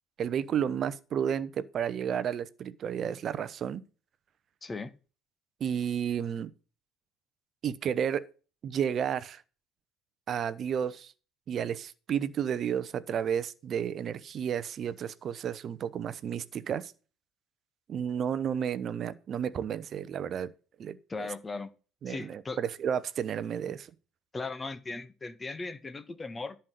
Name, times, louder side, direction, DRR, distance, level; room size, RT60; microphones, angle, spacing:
voice 1, 0.2-3.8 5.6-6.5 7.6-8.2 8.6-9.4 10.3-11.1 11.5-16.9 17.9-20.5 20.8-21.3 22.0-23.9, right 8 dB, 40° right, 0.8 m, -32 dB
voice 2, 4.6-4.9 21.1-21.7 22.1-22.6 24.3-26.6, left 3 dB, 20° left, 1.1 m, -37 dB
11.0 x 5.8 x 6.7 m
figure-of-eight pair, 60°, 0 cm